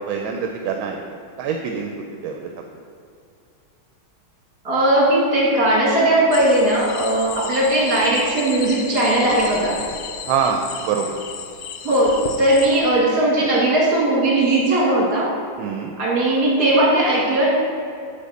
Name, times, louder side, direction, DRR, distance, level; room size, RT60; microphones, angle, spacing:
voice 1, 0.1-1.9 2.2-2.5 10.3-11.2 15.6-15.9, right 6 dB, 80° right, 3 dB, 1.4 m, -25 dB
voice 2, 4.6-9.8 11.8-15.3 16.0-17.5, right 1 dB, 55° right, -4 dB, 2.5 m, -18 dB
sound 1, 6.3-12.8, left 7 dB, 80° left, 0.8 m, -34 dB
8.8 x 4.1 x 6.4 m, 2.5 s
omnidirectional pair, 2.2 m